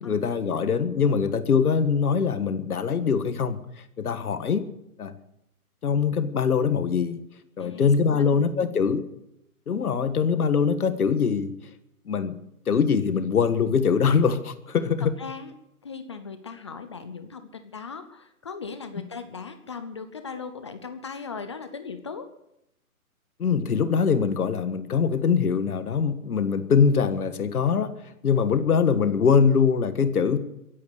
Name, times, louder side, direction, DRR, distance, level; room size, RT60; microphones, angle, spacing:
voice 1, 0.0-3.6 4.0-4.7 5.0-5.2 5.8-7.2 7.6-9.0 9.7-11.5 12.1-12.4 12.7-15.1 23.4-30.4, left 6 dB, 75° left, 1.6 m, -23 dB
voice 2, 15.2-15.5 15.8-22.3, left 5 dB, 20° left, 0.5 m, -38 dB
23.0 x 8.5 x 6.6 m
hypercardioid pair, 150°, 44 cm